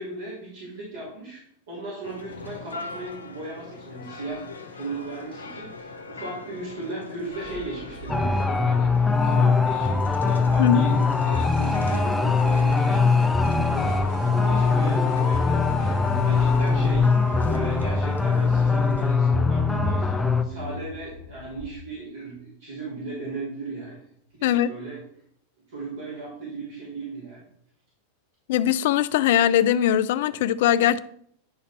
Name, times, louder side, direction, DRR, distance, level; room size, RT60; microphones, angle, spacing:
voice 1, 0.0-1.4 1.7-4.5 4.7-14.0 14.3-15.9 16.2-17.1 17.4-24.0 24.4-25.0 25.7-27.4, right 3 dB, 60° right, 3.2 m, -36 dB
sound 1, 2.0-19.2, left 4 dB, 75° left, 0.9 m, -42 dB
sound 2, 7.2-21.8, left 3 dB, 30° right, 1.9 m, -38 dB
sound 3, 8.1-20.4, left 4 dB, 10° left, 0.6 m, -21 dB
voice 2, 28.5-31.0, left 11 dB, 55° left, 0.3 m, -20 dB
10.0 x 4.1 x 4.3 m
figure-of-eight pair, 90°, 0 cm